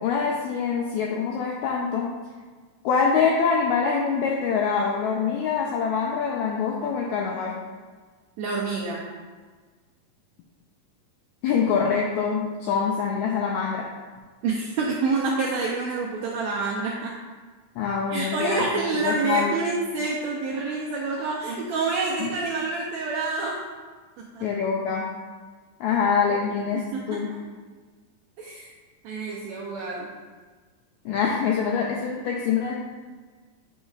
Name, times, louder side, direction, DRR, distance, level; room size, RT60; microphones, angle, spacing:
voice 1, 0.0-2.1 2.8-7.6 11.4-13.9 17.8-18.7 19.0-19.6 22.2-22.3 24.4-25.1 25.8-27.3 31.0-32.7, left 6 dB, 85° left, -1 dB, 1.6 m, -25 dB
voice 2, 8.4-9.0 14.4-17.1 18.1-23.6 24.3-24.4 26.7-27.2 28.4-28.7 29.0-30.1, right 3 dB, 90° right, -3 dB, 1.5 m, -27 dB
9.2 x 5.3 x 2.4 m, 1.4 s
omnidirectional pair, 3.9 m